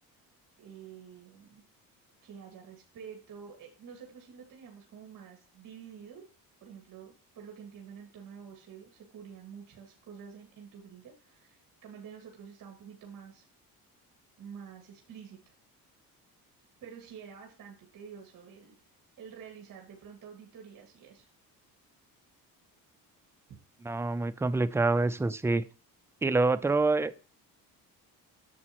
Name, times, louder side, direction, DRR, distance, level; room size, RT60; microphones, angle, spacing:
voice 1, 0.6-1.6 2.2-6.2 6.6-13.4 14.4-15.5 16.8-18.8 19.2-21.3, right 7 dB, 60° right, 2.0 m, -48 dB
voice 2, 23.8-25.6 26.2-27.2, right 3 dB, 5° right, 0.4 m, -26 dB
8.6 x 7.1 x 3.0 m
cardioid pair, 125°, 37 cm